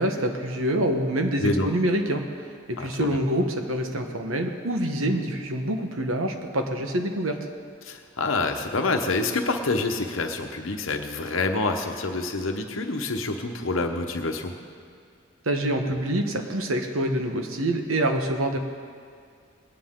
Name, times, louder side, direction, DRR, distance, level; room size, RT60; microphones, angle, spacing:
voice 1, 0.0-2.2 2.7-7.4 15.4-18.6, right 1 dB, 80° right, 4 dB, 1.2 m, -26 dB
voice 2, 2.8-3.2 7.8-14.5, left 3 dB, 75° left, 4 dB, 1.0 m, -27 dB
19.5 x 9.9 x 3.8 m, 2.2 s
head